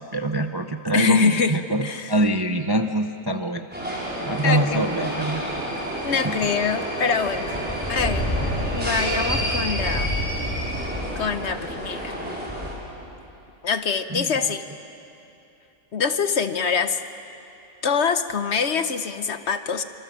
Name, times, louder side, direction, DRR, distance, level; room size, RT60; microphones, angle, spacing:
voice 1, 0.0-3.7 4.2-5.4 6.1-6.4 14.1-14.3, right 1 dB, 25° right, 6 dB, 0.5 m, -24 dB
voice 2, 0.9-2.1 4.4-4.8 6.0-7.5 7.9-8.4 8.7-10.1 11.2-12.1 13.6-14.6 15.9-17.0 17.8-19.8, left 6 dB, 55° left, 10 dB, 1.0 m, -24 dB
sound 1, 3.7-12.7, equal, 5° right, 5.5 m, -28 dB
26.0 x 26.0 x 7.4 m, 2.8 s
omnidirectional pair, 1.6 m